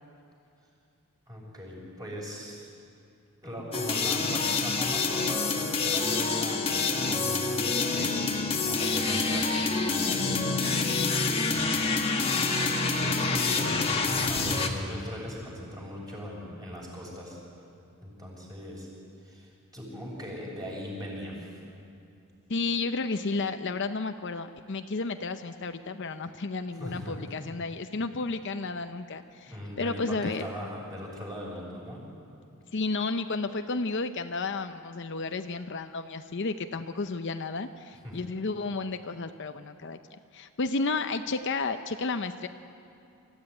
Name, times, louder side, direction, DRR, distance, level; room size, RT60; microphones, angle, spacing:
voice 1, 1.3-2.7 3.4-7.7 7.9-10.6 11.5-12.1 13.0-17.4 18.0-18.9 19.2-21.6 26.8-27.2 29.4-32.0 38.0-38.2, equal, 15° right, -4 dB, 6.5 m, -40 dB
sound 1, 3.7-14.7, left 4 dB, 25° left, 1.6 m, -27 dB
voice 2, 22.5-30.4 32.7-40.0 40.3-42.5, left 3 dB, 55° left, 8 dB, 0.7 m, -32 dB
25.0 x 14.5 x 9.8 m, 2.7 s
head